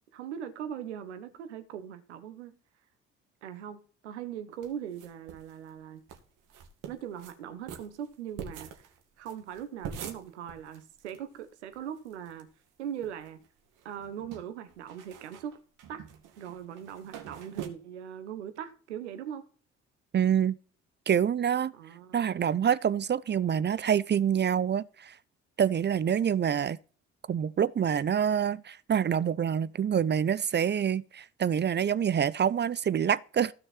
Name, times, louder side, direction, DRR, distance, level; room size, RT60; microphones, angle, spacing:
voice 1, 0.1-2.5 3.4-6.0 6.9-8.9 9.2-12.5 12.8-13.4 13.8-15.6 15.9-16.1 16.4-19.4 21.7-22.4, right 9 dB, 80° right, 1.3 m, -40 dB
sound 1, 4.6-5.5 5.8-5.9 6.1-6.2 6.5-7.3 7.7-11.2 11.4-11.5 11.7-12.4 12.8-13.5 13.8-17.7, right 8 dB, 65° right, 2.3 m, -44 dB
voice 2, 20.1-20.6 21.1-21.7 22.1-25.1 25.6-26.8 27.3-33.5, right 8 dB, 30° right, 0.6 m, -26 dB
15.5 x 6.6 x 4.4 m
figure-of-eight pair, 45°, 34 cm